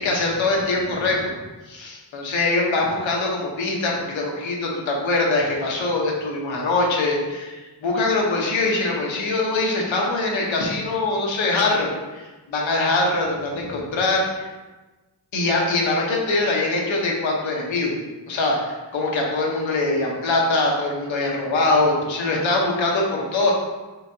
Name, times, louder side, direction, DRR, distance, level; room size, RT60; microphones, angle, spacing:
voice 1, 0.0-1.3 1.7-14.5 15.3-18.0 18.3-23.5, left 2 dB, 85° left, -2 dB, 1.0 m, -23 dB
5.8 x 2.7 x 2.7 m, 1.2 s
cardioid pair, 85°, 45 cm